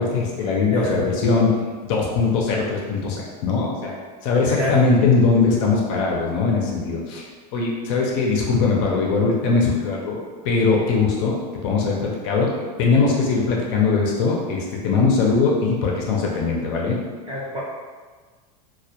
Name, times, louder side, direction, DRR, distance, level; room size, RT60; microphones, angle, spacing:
voice 1, 0.0-1.5 1.8-4.0 4.2-11.3 11.6-12.5 12.8-17.0, left 4 dB, 50° left, -2 dB, 0.4 m, -21 dB
voice 2, 0.7-1.0 4.6-4.8 17.3-17.6, equal, 25° right, -7 dB, 0.7 m, -26 dB
2.1 x 2.1 x 2.8 m, 1.4 s
supercardioid pair, 155°, 21 cm